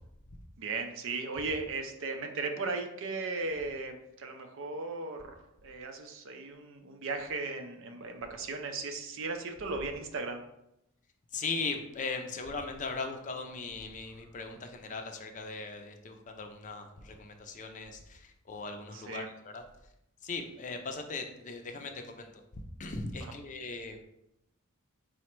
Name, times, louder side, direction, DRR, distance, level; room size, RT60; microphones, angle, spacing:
voice 1, 0.6-10.4 18.9-19.3 23.2-23.3, right 3 dB, 60° right, 5 dB, 0.5 m, -37 dB
voice 2, 11.3-19.6 20.2-22.4 22.8-24.0, left 4 dB, 35° left, 5 dB, 0.4 m, -39 dB
4.8 x 2.1 x 4.4 m, 0.82 s
head